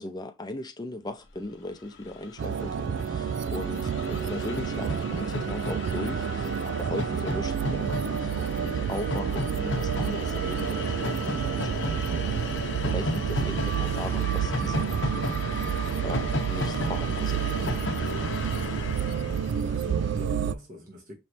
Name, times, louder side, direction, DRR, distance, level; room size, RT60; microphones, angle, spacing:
voice 1, 0.0-12.2 12.8-15.4 15.7-17.5, left 1 dB, 20° left, 0.6 m, -38 dB
Train, 1.6-1.7 1.9-20.3, left 2 dB, 70° left, 0.9 m, -35 dB
sound 1, 2.4-20.5, right 7 dB, 65° right, 0.3 m, -29 dB
voice 2, 19.0-21.1, left 1 dB, 45° right, 1.5 m, -44 dB
5.6 x 3.2 x 2.6 m
head